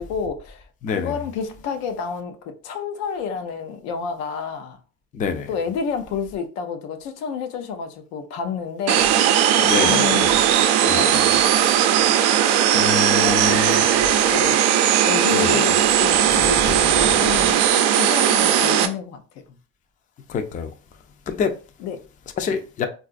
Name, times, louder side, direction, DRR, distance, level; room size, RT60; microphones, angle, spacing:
voice 1, 0.0-4.8 5.5-9.1 9.6-10.3 10.8-11.8 13.1-14.6 15.1-19.6 21.8-22.1, left 6 dB, 90° left, 0.7 m, -30 dB
voice 2, 0.8-1.2 5.1-5.5 9.6-10.2 10.9-11.0 12.7-13.9 15.3-15.6 20.3-20.7 21.3-21.5 22.4-22.9, left 5 dB, 25° left, 0.4 m, -26 dB
sound 1, 8.9-18.9, right 10 dB, 90° right, 0.5 m, -18 dB
3.8 x 2.5 x 2.4 m
cardioid pair, 120°, 32 cm